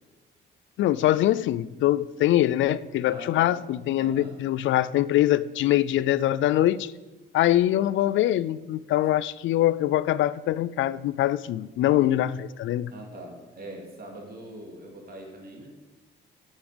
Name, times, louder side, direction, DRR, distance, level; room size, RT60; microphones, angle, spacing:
voice 1, 0.8-6.9 7.3-12.9, left 13 dB, 75° left, 18 dB, 0.4 m, -23 dB
voice 2, 3.0-3.6 4.0-4.4 12.9-15.7, right 1 dB, 50° right, 1 dB, 2.8 m, -42 dB
11.0 x 7.2 x 5.2 m, 1.1 s
cardioid pair, 90°, 20 cm